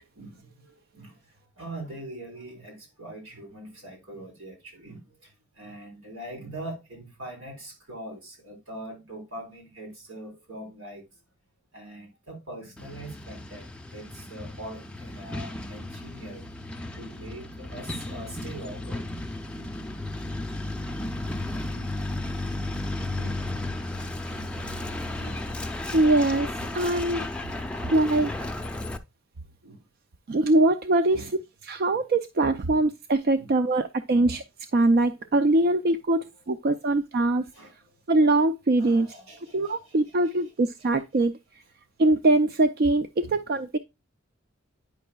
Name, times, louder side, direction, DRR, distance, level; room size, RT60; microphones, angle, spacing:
voice 1, 0.2-1.2 1.6-11.0 11.7-16.5 17.0-19.1 19.6-19.8 20.3-20.4 21.7-21.9 22.5-22.7 23.1-25.6 27.7-28.3 29.6-29.8 31.1-31.4 31.9-32.0 32.6-32.8 33.3-33.5 34.1-34.3 35.5-35.6 36.1-36.3 36.7-36.8 37.4-38.0 38.8-40.0 40.2-40.4 40.8-40.9 43.2-43.4, right 1 dB, 80° right, 3.9 m, -43 dB
Truck, 12.8-29.0, left 1 dB, 5° left, 0.5 m, -34 dB
voice 2, 25.9-26.5 26.7-27.2 27.9-28.3 30.3-31.2 31.7-34.4 34.7-37.4 38.1-39.1 39.5-41.3 42.0-43.8, right 2 dB, 50° right, 0.4 m, -22 dB
9.4 x 5.6 x 2.3 m
head